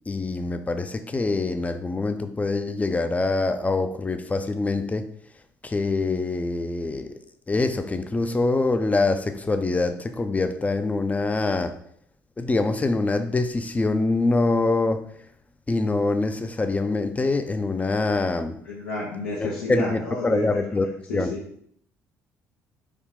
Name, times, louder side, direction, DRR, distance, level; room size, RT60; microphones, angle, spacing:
voice 1, 0.1-5.1 5.6-7.2 7.5-11.8 12.4-15.0 15.7-18.6 19.4-21.4, left 3 dB, 20° left, 9 dB, 0.4 m, -24 dB
voice 2, 18.7-20.6 21.1-21.4, left 2 dB, 85° left, -6 dB, 0.6 m, -30 dB
3.7 x 2.2 x 3.6 m, 0.66 s
hypercardioid pair, 55°, 7 cm